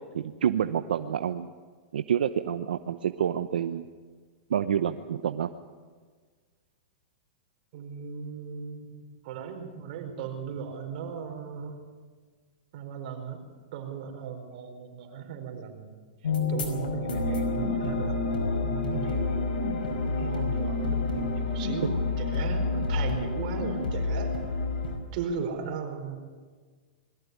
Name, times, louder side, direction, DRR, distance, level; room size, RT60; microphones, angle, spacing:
voice 1, 0.0-1.5 1.9-3.8 4.5-5.5, right 9 dB, 85° right, 9 dB, 0.8 m, -28 dB
voice 2, 7.7-11.8 12.7-13.4 13.7-15.9 16.5-19.4 20.0-24.3 25.1-26.2, right 6 dB, 55° right, 4 dB, 4.6 m, -37 dB
sound 1, 16.2-25.0, left 3 dB, 85° left, 5.2 m, -29 dB
22.0 x 15.0 x 9.5 m, 1.5 s
hypercardioid pair, 135°, 5 cm